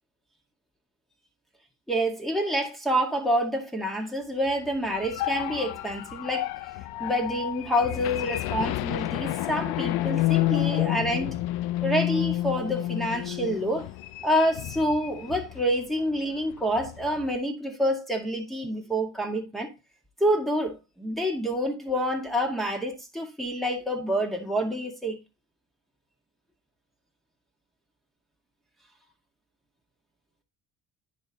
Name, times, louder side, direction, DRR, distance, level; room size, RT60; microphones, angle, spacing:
voice 1, 1.9-6.5 7.0-11.3 11.8-13.9 14.2-19.7 20.2-25.2, equal, ahead, 1.9 m, -27 dB
sound 1, 4.7-15.7 16.0-16.2 16.5-17.3, left 16 dB, 70° left, 0.6 m, -30 dB
10.5 x 4.7 x 2.9 m
supercardioid pair, 75°, 39 cm